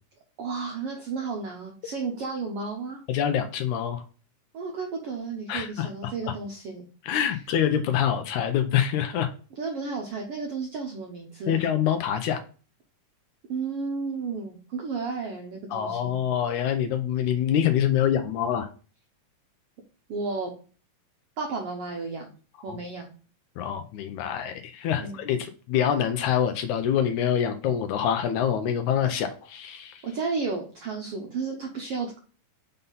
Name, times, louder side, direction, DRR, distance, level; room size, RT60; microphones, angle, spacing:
voice 1, 0.4-3.0 4.5-6.9 9.6-11.6 13.5-16.2 20.1-20.5 21.4-22.3 22.6-23.1 24.9-25.2 30.0-32.2, right 4 dB, 75° right, 1 dB, 1.3 m, -33 dB
voice 2, 3.1-4.0 5.5-6.3 7.0-9.3 11.5-12.4 15.7-18.7 22.7-22.8 23.6-30.0, left 9 dB, 80° left, 7 dB, 1.9 m, -26 dB
5.5 x 5.4 x 4.0 m, 0.39 s
omnidirectional pair, 3.8 m